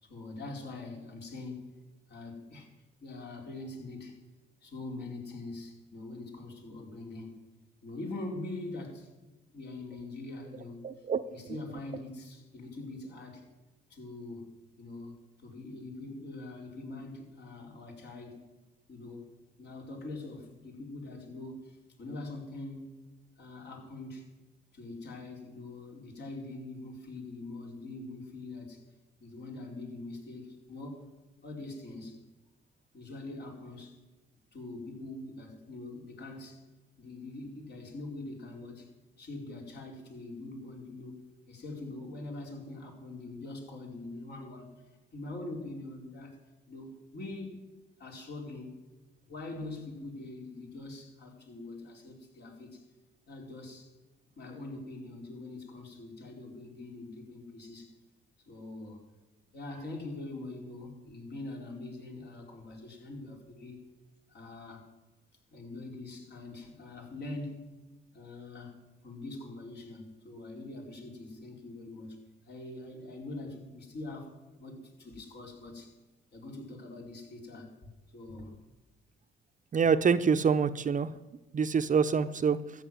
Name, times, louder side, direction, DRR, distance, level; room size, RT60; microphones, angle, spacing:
voice 1, 0.0-1.6 2.1-2.7 3.0-4.2 4.6-7.3 7.8-9.1 9.5-13.5 13.9-14.5 14.8-18.4 18.9-19.3 19.6-22.9 23.4-24.3 24.7-28.8 29.2-31.1 31.4-32.2 32.9-34.0 34.5-36.6 37.0-38.9 39.2-44.7 45.1-46.4 46.7-47.6 48.0-48.8 49.2-52.8 53.3-53.9 54.4-57.9 58.5-59.0 59.5-63.8 64.3-64.9 65.5-67.7 68.1-68.8 69.0-72.2 72.5-75.9 76.3-77.7 78.1-78.6, left 2 dB, 60° left, 0 dB, 4.6 m, -43 dB
voice 2, 10.8-11.3 79.7-81.1 81.5-82.6, right 6 dB, 40° right, 12 dB, 0.7 m, -26 dB
13.5 x 7.2 x 9.4 m, 1.1 s
cardioid pair, 90°, 20 cm